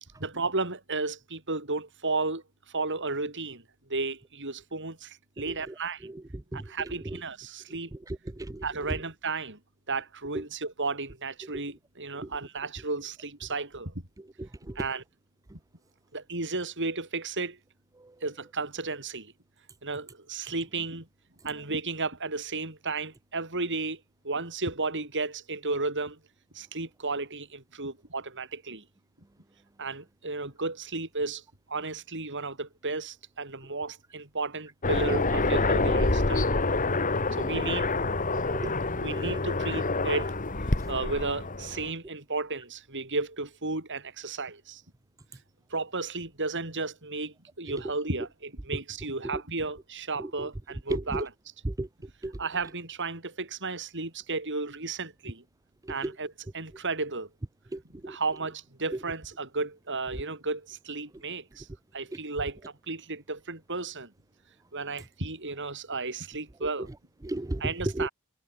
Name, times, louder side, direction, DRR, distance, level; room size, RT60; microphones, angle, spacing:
voice 1, 0.2-3.6 3.9-6.1 6.5-7.9 8.6-9.6 9.9-13.9 14.8-15.0 16.1-17.6 18.2-19.3 19.8-21.1 21.4-26.2 26.5-28.8 29.8-31.4 31.7-36.8 37.3-37.9 39.0-40.4 40.9-44.8 45.7-51.3 52.4-55.4 55.9-57.3 58.0-61.7 61.9-64.1 64.7-66.9 67.6-68.1, right 3 dB, 55° right, 7.7 m, -33 dB
Aircraft, 34.8-41.9, left 3 dB, 35° left, 1.9 m, -27 dB
voice 2, 38.3-38.7 39.2-39.4 50.2-50.5 50.9-51.2 51.6-51.9 52.2-52.3 56.0-56.1 57.7-58.2 67.2-67.6 67.9-68.1, right 1 dB, 15° right, 0.6 m, -34 dB
head